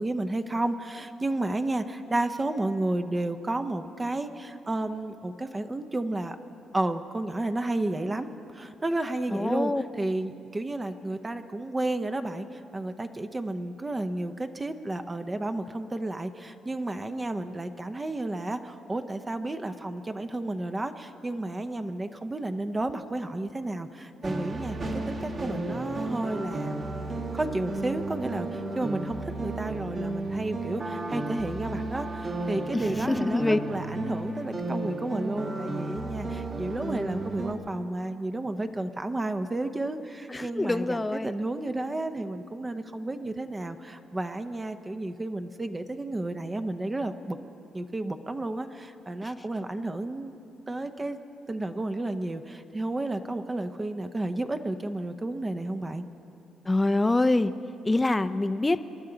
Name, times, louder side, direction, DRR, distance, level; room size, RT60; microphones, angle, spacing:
voice 1, 0.0-6.4 6.7-26.9 27.3-47.4 47.7-50.4 50.7-51.2 51.5-56.1, right 2 dB, 20° right, 8 dB, 0.7 m, -32 dB
voice 2, 9.3-9.8 32.7-33.6 40.3-41.3 49.2-49.3 56.7-57.5 57.8-58.8, left 2 dB, 15° left, 12 dB, 0.5 m, -25 dB
sound 1, 24.2-37.5, right 2 dB, 45° right, 1.7 m, -33 dB
26.5 x 11.5 x 3.9 m, 2.7 s
cardioid pair, 90°, 0 cm